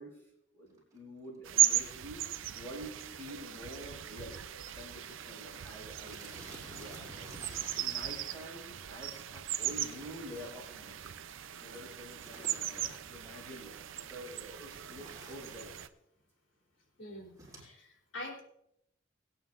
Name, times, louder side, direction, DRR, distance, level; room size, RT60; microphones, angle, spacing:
voice 1, 0.0-4.4 4.7-7.3 7.8-11.1 11.6-15.7, equal, 15° left, -7 dB, 5.8 m, -48 dB
sound 1, 0.7-1.0 1.7-1.8 2.0-2.1 2.3-2.6 2.9-3.1 3.4-3.5 4.2-4.3 4.5-4.8 5.1-5.2 6.0-8.3 9.6-10.8 12.2-13.2 14.7-15.8 17.4-17.7, right 1 dB, 20° right, 5.8 m, -51 dB
sound 2, 1.5-15.9, right 12 dB, 80° right, 0.5 m, -37 dB
voice 2, 17.0-18.4, left 1 dB, 70° left, 0 dB, 3.4 m, -45 dB
23.5 x 9.3 x 2.5 m, 0.76 s
head